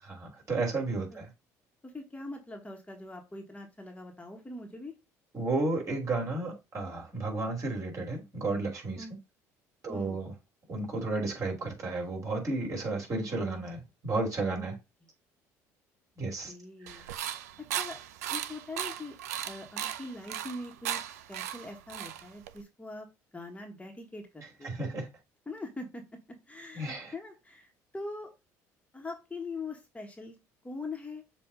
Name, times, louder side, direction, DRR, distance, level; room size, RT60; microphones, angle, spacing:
voice 1, 0.1-1.3 5.3-9.0 9.8-10.3 10.7-14.7 16.2-16.5 16.8-17.3 24.6-25.1 26.7-27.1, right 3 dB, 40° right, 3.4 m, -33 dB
voice 2, 1.8-4.9 9.0-9.1 9.9-10.2 14.6-14.7 16.2-17.5 17.7-18.0 18.3-19.2 19.4-23.1 23.3-24.8 25.4-26.0 26.5-28.3 28.9-30.4 30.6-31.2, left 2 dB, 15° left, 1.5 m, -42 dB
sound 1, 16.9-22.6, right 11 dB, 85° right, 0.5 m, -37 dB
7.0 x 2.7 x 5.2 m
hypercardioid pair, 65°, 8 cm